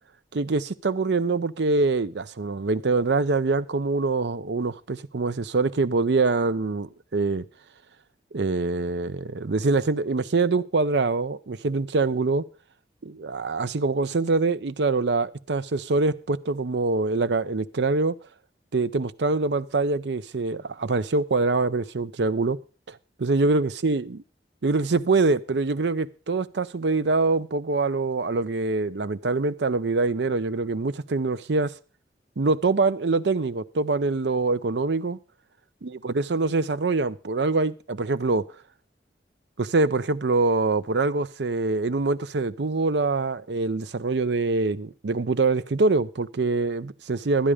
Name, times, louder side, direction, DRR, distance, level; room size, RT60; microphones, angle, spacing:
voice 1, 0.3-7.4 8.3-12.4 13.0-18.1 18.7-22.6 22.9-24.2 24.6-31.7 32.4-35.2 36.0-38.5 39.6-47.5, right 3 dB, 80° right, 0.6 m, -24 dB
12.5 x 10.0 x 5.0 m
head